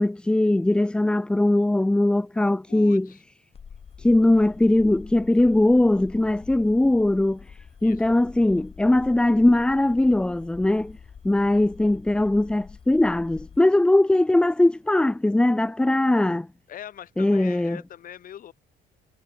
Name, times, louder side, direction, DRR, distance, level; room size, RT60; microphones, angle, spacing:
voice 1, 0.0-3.1 4.0-7.4 7.8-11.0 11.2-16.5 17.2-17.8, left 1 dB, 5° left, 0.4 m, -20 dB
voice 2, 2.7-3.2 7.8-8.0 16.7-18.5, left 10 dB, 55° left, 5.3 m, -42 dB
sound 1, 3.5-13.6, left 6 dB, 35° left, 2.9 m, -46 dB
cardioid pair, 110°, 17 cm